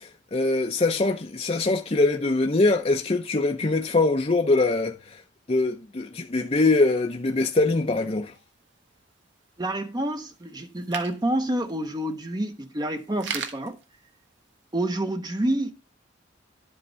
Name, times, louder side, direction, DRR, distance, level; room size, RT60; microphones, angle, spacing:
voice 1, 0.0-5.2 5.5-8.3, left 2 dB, 30° left, 0.6 m, -23 dB
sound 1, 6.7-14.8, right 6 dB, 65° right, 1.3 m, -42 dB
voice 2, 9.6-13.8 14.7-15.7, right 1 dB, 20° right, 0.6 m, -28 dB
11.5 x 5.4 x 5.5 m
head